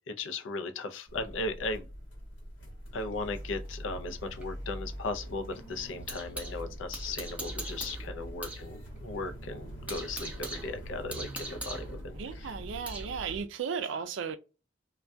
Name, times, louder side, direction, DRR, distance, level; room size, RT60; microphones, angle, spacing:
voice 1, 0.1-1.9 2.9-12.2, left 3 dB, 85° left, 0.5 m, -37 dB
sound 1, 1.1-13.4, equal, 70° left, 1.1 m, -43 dB
sound 2, 3.3-6.6 6.9-8.7 9.0-9.1 9.5-13.1, right 2 dB, 5° right, 0.5 m, -42 dB
voice 2, 12.1-14.4, right 6 dB, 75° right, 0.4 m, -35 dB
2.2 x 2.2 x 2.5 m
head